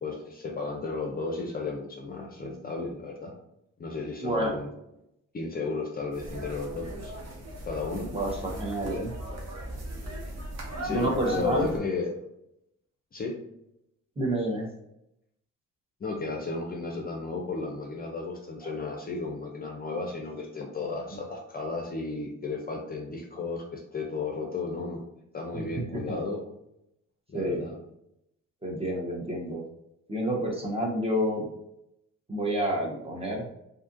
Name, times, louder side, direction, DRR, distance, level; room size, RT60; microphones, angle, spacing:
voice 1, 0.0-3.3 3.8-4.7 5.3-7.1 7.7-8.1 10.8-12.1 13.1-13.4 16.0-25.0 25.3-26.4 27.3-27.7, left 3 dB, 30° left, 1 dB, 0.5 m, -34 dB
voice 2, 4.2-4.6 8.1-9.1 10.8-11.7 14.2-14.7 18.6-18.7 21.1-21.2 25.5-26.2 27.3-27.7 28.6-29.6 30.1-31.5 32.3-33.5, right 1 dB, 20° right, -1 dB, 0.7 m, -29 dB
sound 1, 6.1-11.8, equal, 60° right, 0.8 m, -38 dB
2.7 x 2.4 x 2.5 m, 0.82 s
cardioid pair, 90°, 30 cm